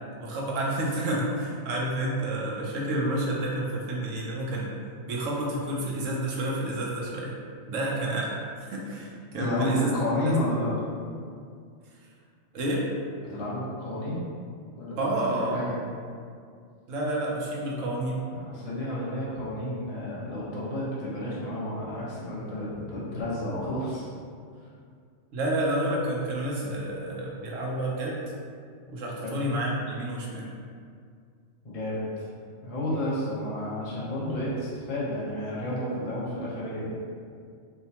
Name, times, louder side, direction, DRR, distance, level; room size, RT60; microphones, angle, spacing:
voice 1, 0.0-4.8 5.1-7.4 7.7-9.9 10.2-10.4 12.5-12.9 15.0-15.6 16.9-18.2 25.3-28.2 28.9-30.4, right 1 dB, 80° right, -3 dB, 1.0 m, -29 dB
voice 2, 9.4-10.7 13.2-14.2 14.8-15.8 18.3-24.1 29.2-29.3 31.6-32.3 32.6-36.9, left 1 dB, 35° left, -7 dB, 0.7 m, -31 dB
4.6 x 2.2 x 2.8 m, 2.2 s
omnidirectional pair, 1.3 m